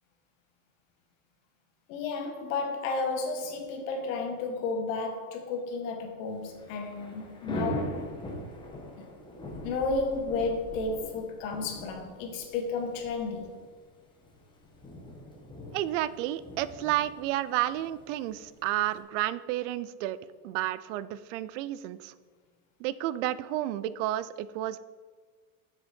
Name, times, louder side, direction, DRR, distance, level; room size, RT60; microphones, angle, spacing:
voice 1, 1.9-8.0 9.0-9.1 9.6-13.5, left 3 dB, 65° left, 3 dB, 1.4 m, -32 dB
Thunder / Rain, 6.3-19.0, equal, 10° left, 1.0 m, -41 dB
voice 2, 15.7-20.2 20.4-22.1 22.8-24.8, right 14 dB, 60° right, 16 dB, 0.5 m, -31 dB
7.3 x 6.4 x 4.3 m, 1.5 s
supercardioid pair, 165°, 43 cm